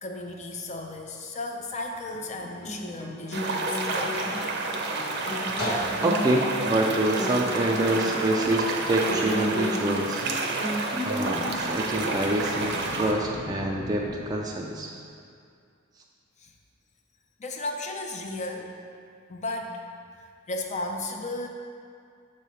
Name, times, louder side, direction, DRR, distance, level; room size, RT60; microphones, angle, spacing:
voice 1, 0.0-4.4 16.4-16.5 17.4-18.7 19.3-19.8 20.2-21.5, left 2 dB, 35° left, 2 dB, 0.6 m, -35 dB
Guitar, 2.1-11.5, left 1 dB, 55° left, 1.2 m, -34 dB
sound 1, 3.3-13.1, right 3 dB, 60° right, 0.6 m, -30 dB
voice 2, 6.0-10.2 11.0-14.9, right 1 dB, 20° right, -2 dB, 0.4 m, -26 dB
sound 2, 11.1-14.8, left 1 dB, 80° left, 0.8 m, -41 dB
7.4 x 3.2 x 5.5 m, 2.3 s
head